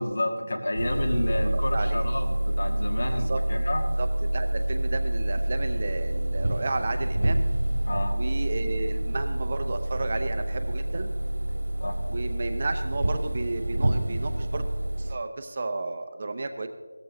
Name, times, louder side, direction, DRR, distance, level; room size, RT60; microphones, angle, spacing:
voice 1, 0.0-3.8 7.9-8.2 11.8-11.9, left 1 dB, 45° left, 4 dB, 1.7 m, -30 dB
sound 1, 0.8-15.1, right 1 dB, 75° right, 1.9 m, -27 dB
voice 2, 1.5-2.1 3.1-3.4 4.0-4.1 4.3-7.5 8.1-11.1 12.1-14.7 15.0-16.7, right 3 dB, 30° right, 7 dB, 0.7 m, -32 dB
17.5 x 14.0 x 3.1 m, 1.5 s
figure-of-eight pair, 175°, 0 cm